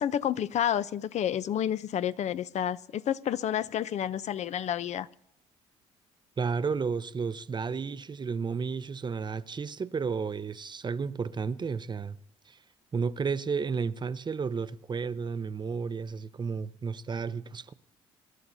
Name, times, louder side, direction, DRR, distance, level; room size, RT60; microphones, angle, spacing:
voice 1, 0.0-5.1, left 10 dB, 55° left, 0.7 m, -30 dB
voice 2, 6.4-12.2 12.5-12.6 12.9-17.7, right 5 dB, 35° right, 0.7 m, -32 dB
25.5 x 12.5 x 2.7 m
hypercardioid pair, 60°, 14 cm